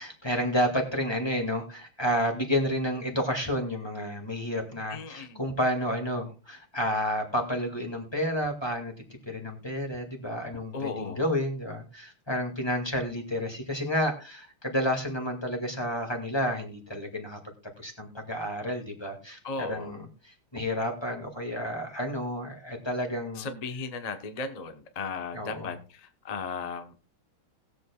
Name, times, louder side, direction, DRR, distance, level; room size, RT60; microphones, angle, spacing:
voice 1, 0.0-8.9 9.3-23.5 25.3-25.7, equal, 10° left, 2 dB, 2.0 m, -30 dB
voice 2, 4.9-5.5 10.7-11.2 19.4-20.0 23.4-26.9, left 4 dB, 40° left, 8 dB, 0.5 m, -36 dB
20.0 x 7.8 x 2.3 m, 0.34 s
omnidirectional pair, 2.3 m